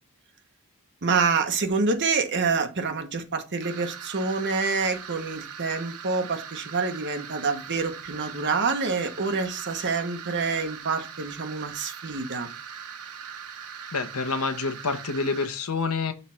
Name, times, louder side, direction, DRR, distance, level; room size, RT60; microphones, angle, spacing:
voice 1, 1.0-12.5, right 4 dB, 55° right, 1.0 m, -27 dB
sound 1, 3.6-15.5, right 7 dB, 80° right, 0.8 m, -41 dB
voice 2, 13.9-16.1, left 4 dB, 75° left, 0.9 m, -27 dB
6.6 x 3.2 x 5.7 m
head